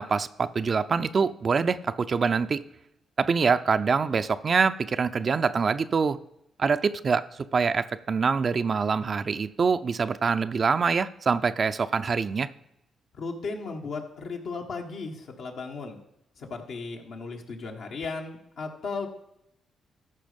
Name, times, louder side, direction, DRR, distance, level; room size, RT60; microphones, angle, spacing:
voice 1, 0.0-2.6 3.2-6.2 6.6-7.3 7.5-12.5, right 5 dB, 50° right, 11 dB, 0.6 m, -25 dB
voice 2, 13.1-16.0 16.4-19.1, left 4 dB, 70° left, 1 dB, 1.8 m, -35 dB
14.0 x 5.5 x 5.2 m, 0.81 s
supercardioid pair, 50°, 0 cm